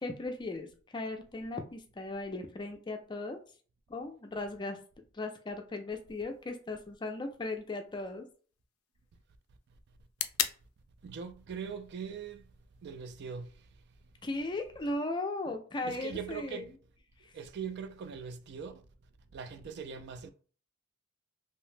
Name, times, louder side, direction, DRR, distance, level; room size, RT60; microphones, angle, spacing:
voice 1, 0.0-3.4 3.9-4.8 5.1-8.2 14.2-16.7, left 2 dB, 20° left, 0.4 m, -37 dB
sound 1, 6.1-14.1, left 11 dB, 85° left, 0.4 m, -43 dB
voice 2, 11.0-12.5 12.8-13.7 15.8-16.8 17.3-18.8 19.3-20.3, right 6 dB, 55° right, 0.3 m, -41 dB
2.7 x 2.0 x 3.1 m
head